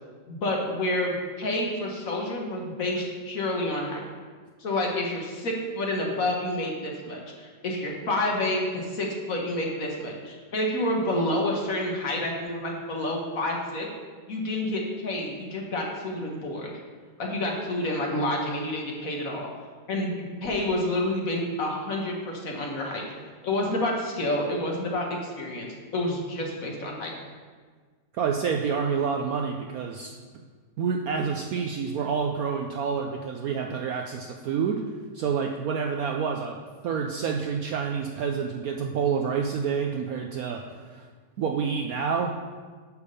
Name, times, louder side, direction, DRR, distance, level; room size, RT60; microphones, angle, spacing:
voice 1, 0.3-4.0 4.6-13.9 14.3-16.7 17.2-19.5 19.9-23.0 23.4-25.7 25.9-27.1, left 1 dB, 50° left, 0 dB, 1.5 m, -29 dB
voice 2, 28.1-30.1 30.8-34.8 35.1-36.6 36.8-41.1 41.4-42.3, right 6 dB, 70° right, 2 dB, 0.8 m, -28 dB
9.3 x 3.5 x 6.7 m, 1.5 s
omnidirectional pair, 1.9 m